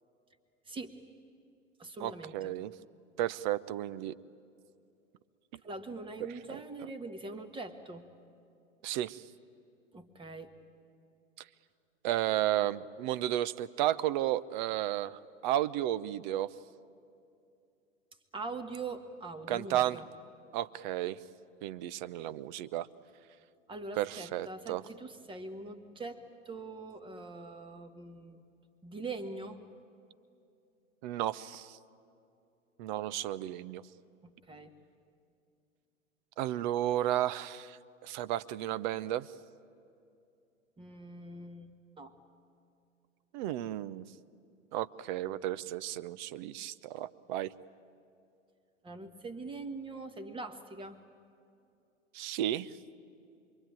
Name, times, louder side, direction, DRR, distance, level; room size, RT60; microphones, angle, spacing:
voice 1, 0.7-1.0 1.8-2.5 5.6-8.1 9.9-10.5 18.3-20.1 23.7-28.4 28.8-29.6 34.2-34.7 40.8-42.1 48.8-51.0, right 3 dB, 15° right, 8 dB, 1.6 m, -43 dB
voice 2, 2.0-2.7 3.2-4.2 8.8-9.2 12.0-16.5 19.5-20.0 20.5-21.2 21.6-22.9 24.0-24.8 31.0-31.8 32.8-33.8 36.4-39.3 43.3-44.1 44.7-47.5 52.1-52.7, right 13 dB, 35° right, 18 dB, 0.7 m, -33 dB
27.0 x 23.0 x 9.2 m, 2.6 s
figure-of-eight pair, 95°, 39 cm